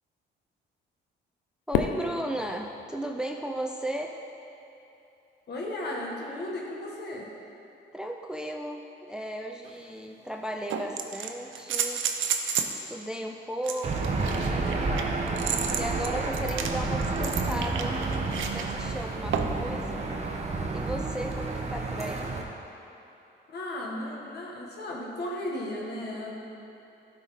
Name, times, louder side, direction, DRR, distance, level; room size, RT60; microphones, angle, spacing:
Fireworks, 1.7-4.0, left 7 dB, 90° left, 0.6 m, -33 dB
voice 1, 1.7-4.2 7.9-12.1 12.7-14.9 15.7-18.0 18.3-20.1 20.7-22.3, right 1 dB, 5° right, 2 dB, 0.4 m, -35 dB
voice 2, 5.5-7.3 23.5-26.3, left 1 dB, 55° left, -2 dB, 1.7 m, -35 dB
sound 1, 9.6-9.7 10.7-12.8 13.6-18.7 19.3-19.7 21.3-21.4, right 7 dB, 75° right, 0.7 m, -31 dB
Aircraft / Engine, 13.8-22.4, right 3 dB, 35° right, 1.0 m, -30 dB
12.5 x 4.6 x 4.1 m, 3.0 s
cardioid pair, 90°, 20 cm